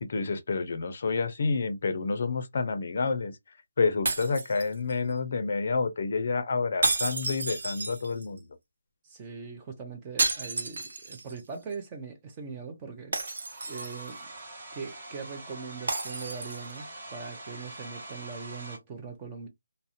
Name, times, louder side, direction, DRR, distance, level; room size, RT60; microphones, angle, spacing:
voice 1, 0.0-3.4 3.8-8.4, left 4 dB, 45° left, 0.5 m, -29 dB
sound 1, 4.0-5.1 6.8-8.4 10.2-11.4 11.7-11.8 13.1-14.2 15.9-16.8, right 2 dB, 65° right, 0.8 m, -31 dB
voice 2, 9.0-13.2 13.6-14.3 14.7-19.5, right 5 dB, 15° right, 0.5 m, -41 dB
Domestic sounds home sounds, 13.2-18.8, right 2 dB, 35° right, 1.1 m, -44 dB
2.4 x 2.0 x 2.7 m
hypercardioid pair, 170°, 0 cm